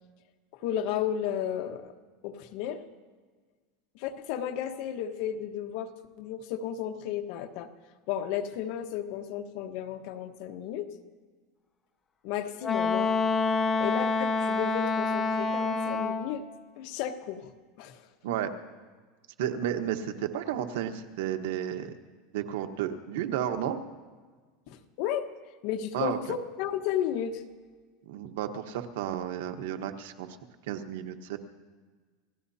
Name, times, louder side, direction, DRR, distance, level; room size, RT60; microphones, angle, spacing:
voice 1, 0.6-1.9 2.2-2.8 3.9-5.9 6.2-7.7 8.1-10.9 12.2-13.1 13.8-16.4 16.8-17.5 17.8-18.1 24.7-25.3 25.6-27.4, left 9 dB, 55° left, 6 dB, 1.2 m, -33 dB
Wind instrument woodwind instrument, 12.6-16.3, left 4 dB, 20° left, 1.8 m, -27 dB
voice 2, 19.4-21.9 22.3-23.8 25.9-26.2 28.1-30.4 30.7-31.4, right 10 dB, 80° right, 7 dB, 1.2 m, -32 dB
29.5 x 16.5 x 2.8 m, 1.4 s
supercardioid pair, 160°, 0 cm